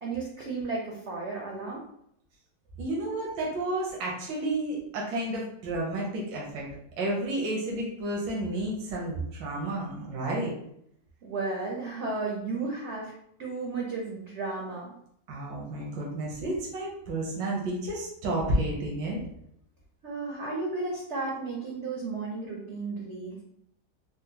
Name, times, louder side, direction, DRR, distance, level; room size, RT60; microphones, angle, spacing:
voice 1, 0.0-1.8 11.2-13.1 13.4-14.9 20.0-23.4, right 3 dB, 65° right, -2 dB, 0.7 m, -33 dB
voice 2, 2.8-6.7 7.0-10.5 15.3-19.2, right 1 dB, 85° right, -3 dB, 1.5 m, -31 dB
4.2 x 2.0 x 2.8 m, 0.73 s
omnidirectional pair, 1.9 m